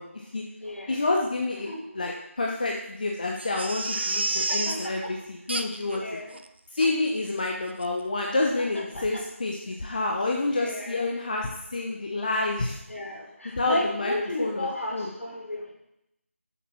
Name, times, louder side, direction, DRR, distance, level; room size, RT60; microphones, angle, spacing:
voice 1, 0.0-0.4 0.9-1.7 1.9-6.0 6.7-12.8 13.6-15.1, left 2 dB, 35° left, 0 dB, 0.9 m, -28 dB
voice 2, 0.6-1.0 1.7-1.8 3.9-4.2 4.5-4.9 5.9-6.3 9.0-9.2 10.5-11.0 12.9-15.7, left 1 dB, 70° left, -2 dB, 3.8 m, -33 dB
Crying sobbing, 3.4-4.9 5.5-6.0 6.3-6.4 6.8-6.9 7.4-7.5 7.8-7.9, right 2 dB, 50° right, 0.7 m, -30 dB
7.4 x 7.0 x 6.1 m, 0.81 s
figure-of-eight pair, 170°, 8 cm